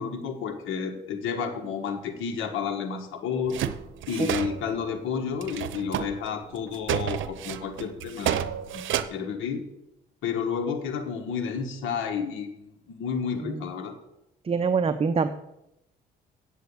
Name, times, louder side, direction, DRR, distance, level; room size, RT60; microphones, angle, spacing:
voice 1, 0.0-3.6 4.1-8.4 8.7-8.8 9.1-9.6 10.2-13.9, left 6 dB, 85° left, 3 dB, 1.4 m, -31 dB
sound 1, 3.5-4.8 5.4-6.3 6.6-9.0, right 10 dB, 75° right, 0.8 m, -30 dB
voice 2, 14.5-15.3, right 5 dB, 30° right, 10 dB, 0.7 m, -25 dB
8.1 x 8.0 x 8.3 m, 0.86 s
cardioid pair, 90°, 20 cm